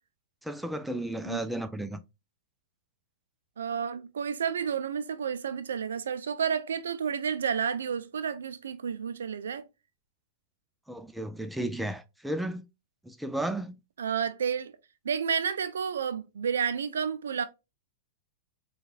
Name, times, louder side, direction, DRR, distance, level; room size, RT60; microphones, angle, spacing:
voice 1, 0.4-2.0 10.9-12.7 13.0-13.8, right 1 dB, 5° right, 0.4 m, -33 dB
voice 2, 3.6-9.6 14.0-14.8 15.0-17.4, right 7 dB, 75° right, 0.4 m, -31 dB
4.6 x 2.3 x 2.3 m
hypercardioid pair, 100°, 0 cm